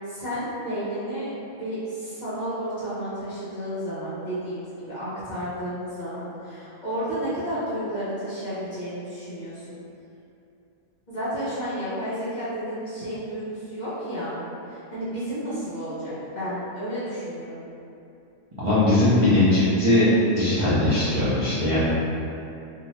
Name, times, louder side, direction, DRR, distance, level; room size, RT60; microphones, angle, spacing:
voice 1, 0.1-9.8 11.1-14.4 14.7-17.6, equal, 40° left, -13 dB, 0.7 m, -32 dB
voice 2, 18.6-20.1 20.4-21.9, left 1 dB, 45° right, -13 dB, 0.4 m, -20 dB
2.7 x 2.2 x 3.0 m, 2.8 s
omnidirectional pair, 1.4 m